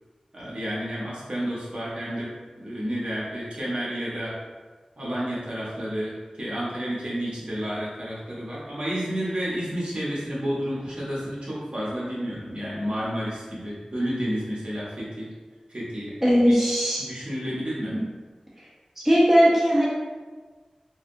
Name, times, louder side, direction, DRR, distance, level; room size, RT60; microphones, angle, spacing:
voice 1, 0.3-2.3 2.6-4.3 5.0-15.3 15.7-16.1 16.5-16.6 17.0-17.9, equal, 55° right, -7 dB, 1.1 m, -30 dB
voice 2, 16.2-17.1 19.0-19.9, equal, 10° right, -7 dB, 0.8 m, -18 dB
3.3 x 2.7 x 2.5 m, 1.4 s
wide cardioid pair, 55°, 2 cm